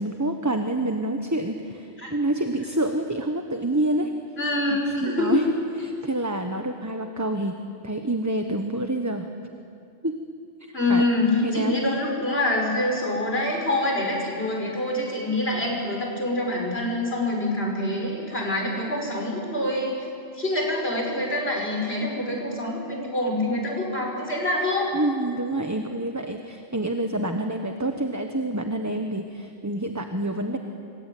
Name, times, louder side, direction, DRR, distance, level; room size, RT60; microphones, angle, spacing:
voice 1, 0.0-4.1 4.7-5.5 5.8-7.6 7.8-9.3 10.0-10.2 10.6-11.0 11.4-11.8 24.9-30.6, right 1 dB, 15° right, 5 dB, 1.3 m, -27 dB
voice 2, 4.4-5.5 10.7-19.9 20.3-24.9, left 1 dB, 65° left, 0 dB, 5.9 m, -25 dB
27.0 x 23.5 x 9.4 m, 2.4 s
omnidirectional pair, 1.1 m